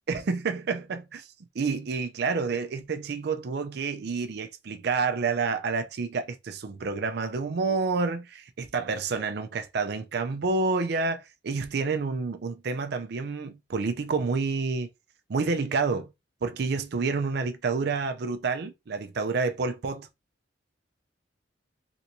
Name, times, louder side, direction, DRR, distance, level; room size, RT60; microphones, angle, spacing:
voice 1, 0.1-1.3 1.5-14.9 15.3-16.1 16.4-20.1, right 4 dB, 60° right, 0.4 m, -29 dB
3.4 x 2.7 x 2.9 m
head